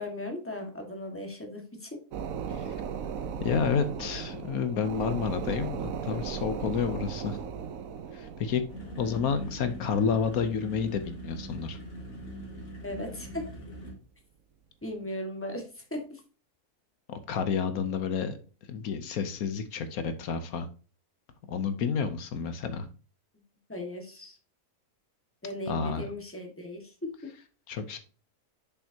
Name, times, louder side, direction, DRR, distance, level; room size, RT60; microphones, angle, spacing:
voice 1, 0.0-1.9 12.8-13.4 14.8-16.2 23.7-24.4 25.4-26.9, left 1 dB, 10° left, 3 dB, 1.5 m, -37 dB
sound 1, 2.1-12.1 12.5-12.6, right 7 dB, 65° right, 1.1 m, -38 dB
voice 2, 3.4-7.4 8.1-8.6 9.0-11.8 17.1-18.4 18.7-20.7 21.5-22.9 25.7-26.1 27.7-28.0, left 6 dB, 70° left, 10 dB, 1.2 m, -30 dB
sound 2, 8.7-13.9, right 1 dB, 45° left, 2.2 m, -42 dB
6.8 x 5.8 x 2.8 m, 0.37 s
omnidirectional pair, 1.7 m